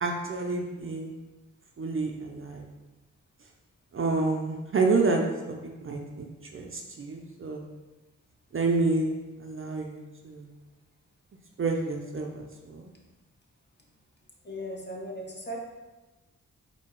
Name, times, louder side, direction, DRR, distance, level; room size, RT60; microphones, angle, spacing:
voice 1, 0.0-1.1 1.8-2.7 3.9-5.3 5.8-7.7 8.5-9.1 9.4-10.5 11.6-12.9, right 3 dB, 40° right, 2 dB, 0.5 m, -29 dB
voice 2, 14.4-15.6, equal, 30° left, -1 dB, 0.9 m, -37 dB
3.7 x 2.7 x 4.3 m, 1.2 s
wide cardioid pair, 95°, 33 cm